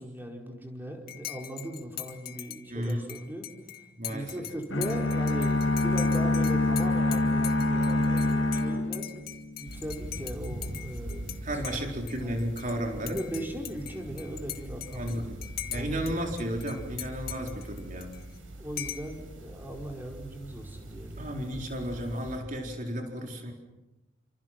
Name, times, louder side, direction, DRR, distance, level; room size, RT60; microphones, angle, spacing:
voice 1, 0.0-3.5 4.1-9.1 9.6-11.5 12.2-12.4 12.9-15.3 15.7-16.3 18.6-21.4, equal, 10° right, 1 dB, 4.7 m, -39 dB
Dishes pots and pans / Cutlery silverware / Chink clink, 1.1-11.4 11.6-12.7 13.1-16.1 16.4-18.4 18.8-19.1, left 13 dB, 50° left, 2.0 m, -41 dB
voice 2, 2.7-3.1 4.0-4.3 11.4-13.2 14.9-15.4 15.7-18.1 21.2-23.5, equal, 40° right, 2 dB, 4.3 m, -33 dB
sound 1, 4.7-9.7, left 2 dB, 70° left, 2.4 m, -26 dB
sound 2, 9.7-22.4, right 1 dB, 90° right, 7.3 m, -42 dB
29.5 x 27.0 x 6.0 m, 1.0 s
head